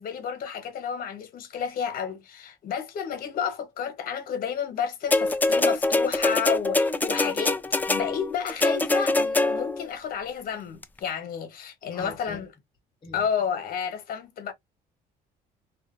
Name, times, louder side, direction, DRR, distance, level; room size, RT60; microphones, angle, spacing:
voice 1, 0.0-7.6 7.9-12.5 13.1-14.5, left 7 dB, 60° left, 1.1 m, -31 dB
sound 1, 5.1-9.9 10.8-10.9, left 2 dB, 10° left, 0.3 m, -24 dB
voice 2, 11.9-12.4 13.0-13.3, left 2 dB, 30° left, 0.8 m, -42 dB
2.5 x 2.5 x 2.4 m
cardioid pair, 110°, 17 cm